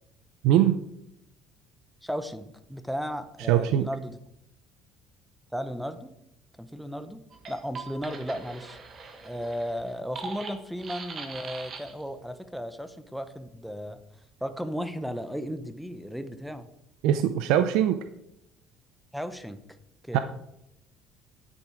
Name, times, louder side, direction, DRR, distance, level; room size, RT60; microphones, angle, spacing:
voice 1, 0.4-0.8 3.5-3.9 17.0-18.0 20.1-20.2, right 11 dB, 80° right, 10 dB, 0.6 m, -21 dB
voice 2, 2.0-4.2 5.5-6.1 6.6-7.2 7.5-8.8 9.2-14.0 14.4-16.7 19.1-19.6 20.1-20.2, equal, ahead, 11 dB, 0.7 m, -35 dB
sound 1, 7.3-12.1, right 4 dB, 30° right, 1.4 m, -41 dB
10.0 x 8.4 x 4.9 m, 0.81 s
cardioid pair, 170°, 0 cm